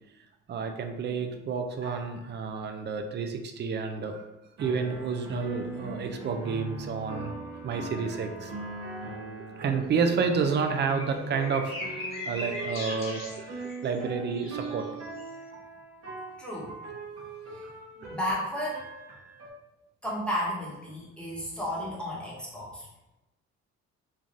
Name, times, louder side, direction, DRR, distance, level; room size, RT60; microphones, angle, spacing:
voice 1, 0.5-4.2 4.6-7.3 7.6-8.5 9.6-14.9 18.0-18.2, right 5 dB, 35° right, 6 dB, 0.4 m, -30 dB
sound 1, 1.8-2.4 4.6-19.5, right 2 dB, 55° right, 0.9 m, -40 dB
sound 2, 10.4-14.0 14.4-15.3, left 1 dB, 45° left, 1.3 m, -39 dB
voice 2, 16.4-16.7 17.5-17.6 18.1-18.8 20.0-22.9, equal, 5° left, -7 dB, 1.1 m, -33 dB
3.3 x 2.3 x 2.5 m, 0.97 s
cardioid pair, 90°, 30 cm